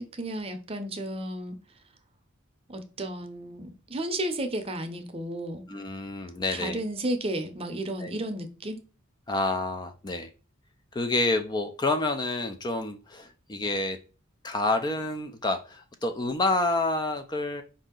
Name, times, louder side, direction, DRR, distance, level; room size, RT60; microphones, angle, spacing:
voice 1, 0.0-1.6 2.7-5.6 6.5-8.8, right 1 dB, 30° right, 0.6 m, -33 dB
voice 2, 5.7-6.8 8.0-8.1 9.3-10.3 10.9-14.0 14.4-17.6, left 2 dB, 20° left, 0.4 m, -28 dB
5.0 x 2.7 x 3.7 m
head